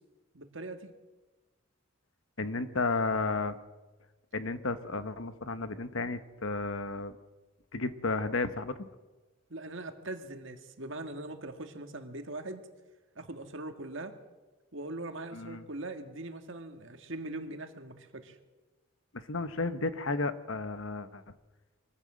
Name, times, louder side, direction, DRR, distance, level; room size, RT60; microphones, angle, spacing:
voice 1, 0.3-0.9 9.5-12.6 13.2-14.1 14.7-18.4, right 2 dB, 60° right, 6 dB, 2.0 m, -41 dB
voice 2, 2.4-3.6 4.3-7.1 7.7-8.7 15.3-15.6 19.1-21.2, left 3 dB, 70° left, 11 dB, 1.2 m, -33 dB
23.5 x 15.0 x 7.7 m, 1.2 s
head